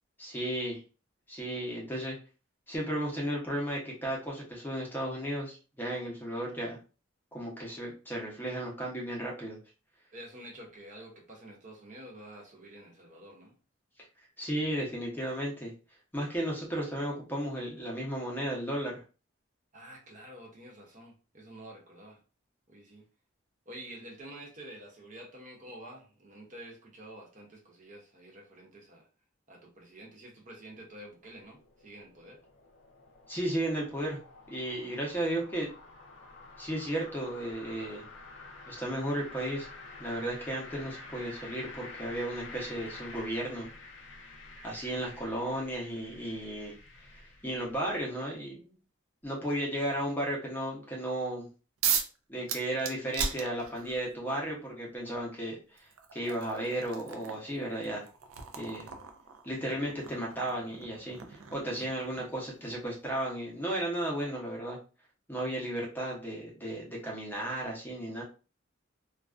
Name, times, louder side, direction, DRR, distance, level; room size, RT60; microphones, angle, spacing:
voice 1, 0.2-0.8 1.3-2.2 2.7-6.8 7.3-9.6 14.4-15.7 16.1-19.0 33.3-34.2 34.5-35.7 36.6-38.0 38.7-39.7 40.0-43.7 44.6-46.7 47.4-48.7 49.2-51.5 52.3-58.1 58.6-58.9 59.4-64.8 65.3-68.2, right 1 dB, 10° left, 0.7 m, -34 dB
voice 2, 10.1-13.5 19.7-22.2 22.7-23.1 23.7-29.1 29.5-32.4 58.9-59.0, right 1 dB, 35° right, 0.5 m, -49 dB
sound 1, 30.4-48.0, left 2 dB, 65° left, 0.5 m, -49 dB
sound 2, 51.8-52.2 52.5-54.0 55.2-55.3 55.8-62.4, right 6 dB, 85° right, 0.4 m, -37 dB
2.3 x 2.3 x 2.3 m
head